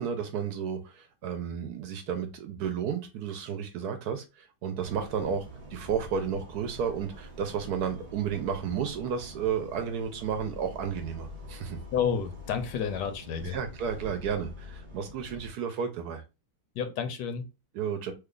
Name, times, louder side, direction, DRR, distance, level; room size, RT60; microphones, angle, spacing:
voice 1, 0.0-11.8 13.4-16.2 17.7-18.1, right 7 dB, 70° right, 1.0 m, -32 dB
sound 1, 4.8-15.5, equal, 50° right, 0.7 m, -45 dB
voice 2, 11.9-13.6 16.7-17.4, left 7 dB, 75° left, 1.2 m, -30 dB
3.2 x 2.3 x 3.6 m
omnidirectional pair, 1.9 m